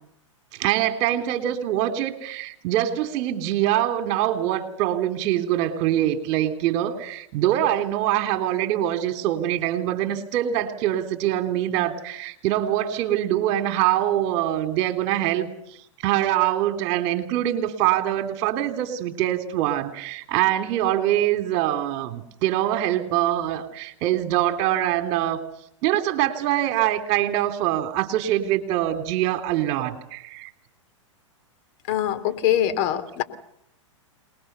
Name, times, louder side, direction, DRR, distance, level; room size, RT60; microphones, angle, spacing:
voice 1, 0.5-15.5 16.0-25.4 25.8-30.5, right 12 dB, 45° right, 8 dB, 3.4 m, -24 dB
voice 2, 31.9-33.2, left 11 dB, 45° left, 10 dB, 3.0 m, -23 dB
27.5 x 21.0 x 6.9 m, 0.74 s
hypercardioid pair, 115°, 16 cm